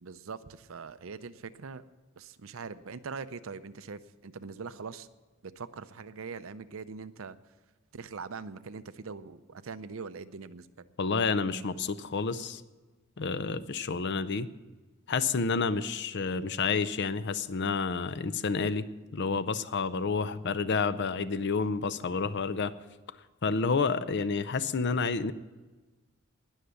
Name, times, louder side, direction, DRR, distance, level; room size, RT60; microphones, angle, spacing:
voice 1, 0.0-1.8 2.2-5.1 5.4-7.4 7.9-10.9, right 5 dB, 70° right, 13 dB, 0.6 m, -42 dB
voice 2, 11.0-12.6 13.2-14.5 15.1-18.9 19.1-22.7 23.4-25.3, left 4 dB, 55° left, 14 dB, 0.6 m, -29 dB
19.5 x 6.5 x 7.0 m, 1.3 s
head